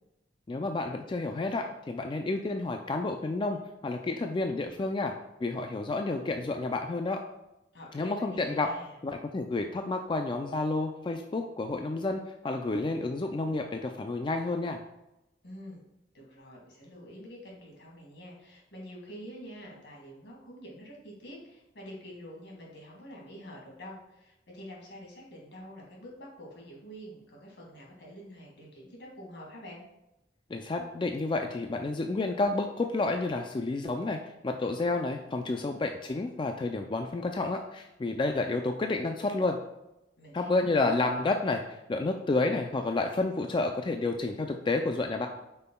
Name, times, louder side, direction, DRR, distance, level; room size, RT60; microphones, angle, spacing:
voice 1, 0.5-5.1 5.4-7.2 7.9-8.7 9.0-14.8 30.5-34.2 34.4-39.6 40.3-45.3, left 3 dB, 25° left, 4 dB, 0.3 m, -30 dB
voice 2, 7.7-8.9 15.4-15.8 16.1-29.8 40.2-40.9, equal, 75° left, -2 dB, 2.1 m, -47 dB
7.8 x 5.5 x 2.2 m, 0.92 s
head